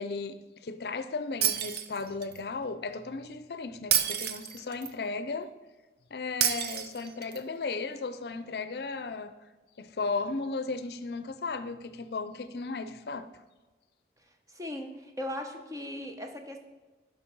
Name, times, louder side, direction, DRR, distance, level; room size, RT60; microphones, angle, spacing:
voice 1, 0.0-5.5 6.1-9.4 9.8-13.3, left 4 dB, 65° left, 0.5 m, -35 dB
Shatter, 1.4-2.4 3.9-4.9 6.4-7.4, right 9 dB, 65° right, 0.6 m, -29 dB
voice 2, 14.5-16.6, left 1 dB, 20° right, 1.0 m, -38 dB
11.5 x 5.4 x 5.4 m
head